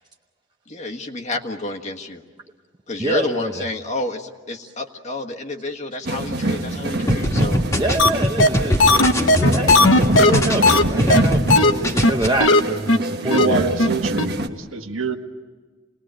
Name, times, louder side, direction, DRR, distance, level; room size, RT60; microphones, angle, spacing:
voice 1, 0.7-2.2 2.9-7.6, left 2 dB, 35° left, 3 dB, 1.5 m, -29 dB
voice 2, 3.0-3.6 7.7-13.6, right 2 dB, 20° right, 2 dB, 0.7 m, -26 dB
sound 1, 6.0-14.5, right 2 dB, 55° right, 1.3 m, -26 dB
sound 2, 7.1-11.6 11.8-12.3, equal, 15° left, 1.7 m, -21 dB
sound 3, 8.0-8.1 8.4-8.5 8.8-10.8 11.1-11.2 11.5-11.7 12.0-12.1 12.4-12.6 12.9-13.0 13.3-13.5 13.8-13.9 14.2-14.3, left 2 dB, 75° left, 1.1 m, -14 dB
voice 3, 13.2-15.2, right 3 dB, 80° right, 5 dB, 1.6 m, -25 dB
28.0 x 20.0 x 8.9 m, 1.5 s
head